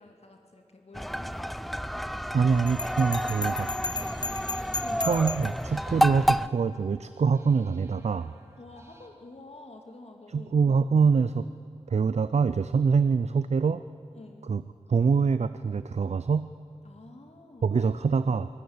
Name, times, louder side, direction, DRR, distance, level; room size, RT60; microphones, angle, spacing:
voice 1, 0.0-1.5 4.8-5.0 8.6-10.6 14.1-14.6 16.8-17.9, left 2 dB, 65° left, 3 dB, 2.4 m, -48 dB
sound 1, 0.9-6.5, equal, ahead, 0.6 m, -30 dB
voice 2, 2.3-3.7 5.0-8.3 10.3-11.5 11.9-13.8 14.5-14.6 14.9-16.5 17.6-18.5, right 5 dB, 70° right, 13 dB, 0.6 m, -24 dB
Bell, 2.7-5.6, left 3 dB, 35° left, 0.9 m, -35 dB
sound 2, 2.8-9.1, right 1 dB, 25° right, 3.1 m, -54 dB
24.0 x 14.0 x 9.6 m, 2.6 s
cardioid pair, 50°, 12 cm